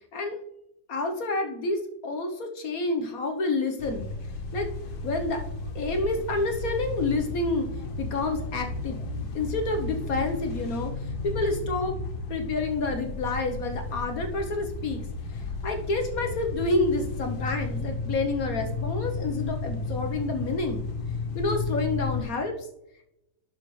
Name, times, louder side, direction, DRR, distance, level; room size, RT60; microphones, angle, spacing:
voice 1, 0.9-4.1 4.5-4.7 5.0-5.4 5.7-7.7 8.0-9.0 9.3-10.9 11.2-12.0 12.3-15.0 15.6-20.8 21.3-22.5, left 2 dB, 60° left, 5 dB, 1.2 m, -28 dB
sound 1, 3.8-22.2, left 3 dB, 85° left, 1.9 m, -33 dB
11.5 x 5.1 x 3.1 m, 0.82 s
omnidirectional pair, 2.0 m